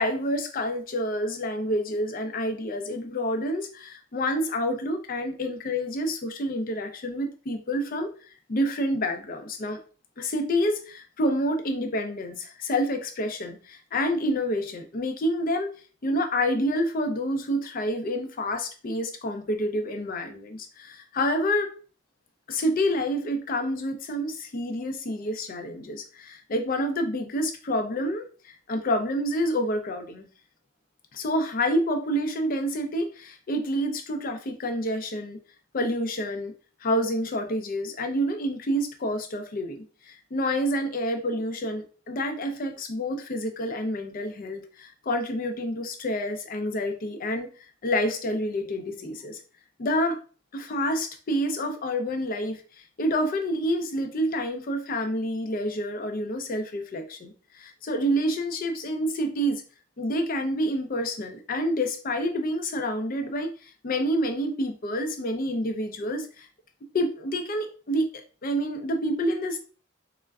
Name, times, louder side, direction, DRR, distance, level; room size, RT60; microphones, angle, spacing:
voice 1, 0.0-8.1 8.5-9.8 10.2-15.7 16.0-21.7 22.5-30.3 31.1-35.4 35.7-36.5 36.8-47.5 47.8-49.4 49.8-50.2 50.5-52.6 53.0-59.6 60.0-66.5 66.9-69.6, equal, 45° left, 5 dB, 0.4 m, -28 dB
3.3 x 2.1 x 2.3 m, 0.37 s
head